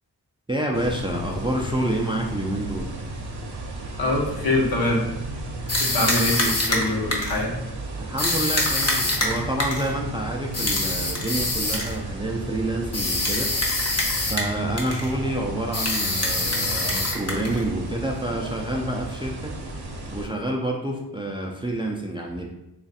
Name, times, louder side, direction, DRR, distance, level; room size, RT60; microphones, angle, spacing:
voice 1, 0.5-2.9 8.0-19.6 20.1-22.6, right 1 dB, 15° right, 0 dB, 0.4 m, -28 dB
sound 1, 0.7-20.3, right 2 dB, 65° right, 0.7 m, -34 dB
voice 2, 4.0-5.1 5.8-7.5, left 2 dB, 60° left, -2 dB, 1.0 m, -24 dB
sound 2, 5.7-7.4 8.2-9.9 10.5-11.9 12.9-14.5 14.8-15.1 15.7-17.6, left 2 dB, 40° left, 0.8 m, -25 dB
3.2 x 2.4 x 4.0 m, 0.93 s
wide cardioid pair, 75°, 41 cm